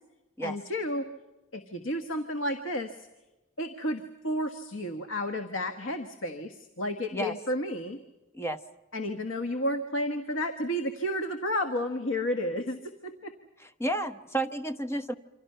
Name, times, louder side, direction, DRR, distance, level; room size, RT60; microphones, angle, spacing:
voice 1, 0.4-1.1 1.5-3.1 3.6-8.0 8.9-13.3, left 1 dB, 85° left, 7 dB, 1.4 m, -32 dB
voice 2, 13.6-15.1, right 1 dB, 15° left, 9 dB, 1.0 m, -31 dB
28.5 x 25.5 x 5.6 m, 1.1 s
head